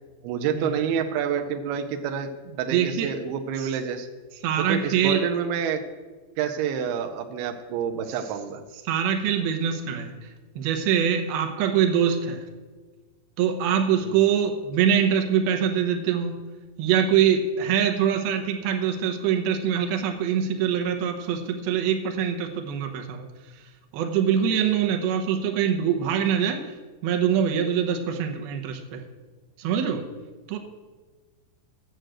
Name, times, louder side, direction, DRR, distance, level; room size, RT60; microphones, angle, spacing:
voice 1, 0.2-2.3 2.6-4.1 4.6-5.8 6.4-8.6 14.0-14.2, right 7 dB, 90° right, 4 dB, 2.3 m, -28 dB
voice 2, 2.7-3.1 3.6-3.7 4.4-5.2 8.9-10.1 10.6-12.4 13.4-16.4 16.8-23.3 23.9-26.7 27.0-29.0 29.6-30.0 30.5-30.6, right 8 dB, 75° right, 4 dB, 2.5 m, -24 dB
10.0 x 6.4 x 7.8 m, 1.3 s
omnidirectional pair, 5.2 m